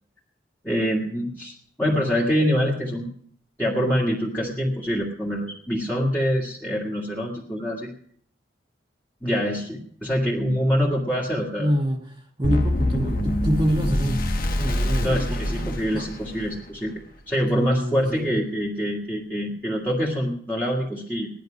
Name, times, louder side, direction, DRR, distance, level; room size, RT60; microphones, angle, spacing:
voice 1, 0.6-3.1 3.6-7.9 9.2-11.7 15.0-16.9 17.3-21.3, equal, 10° left, -6 dB, 2.0 m, -25 dB
voice 2, 11.6-12.0 12.4-14.2 14.6-16.1 17.5-18.4, equal, 25° right, 0 dB, 1.3 m, -26 dB
sound 1, 12.4-16.6, left 1 dB, 50° left, 1.4 m, -25 dB
17.5 x 11.0 x 5.2 m, 0.62 s
head